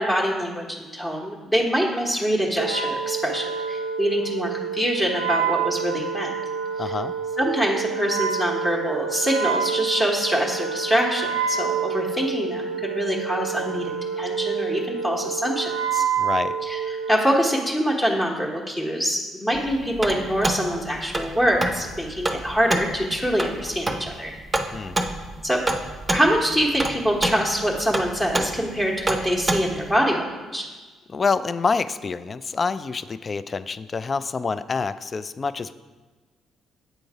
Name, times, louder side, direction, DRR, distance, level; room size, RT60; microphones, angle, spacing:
voice 1, 0.0-6.3 6.8-7.0 7.4-13.9 14.2-16.0 16.6-24.3 25.4-25.6 26.1-30.3 30.5-30.7, equal, 15° left, -2 dB, 1.2 m, -24 dB
Wind instrument woodwind instrument, 2.6-17.3, right 6 dB, 85° right, 0.5 m, -28 dB
voice 2, 6.8-7.1 16.2-16.5 24.7-24.9 31.1-35.7, left 4 dB, 35° left, 13 dB, 0.3 m, -27 dB
sound 1, 19.5-30.0, right 2 dB, 20° right, 0.7 m, -28 dB
8.1 x 3.8 x 4.7 m, 1.3 s
figure-of-eight pair, 45°, 0 cm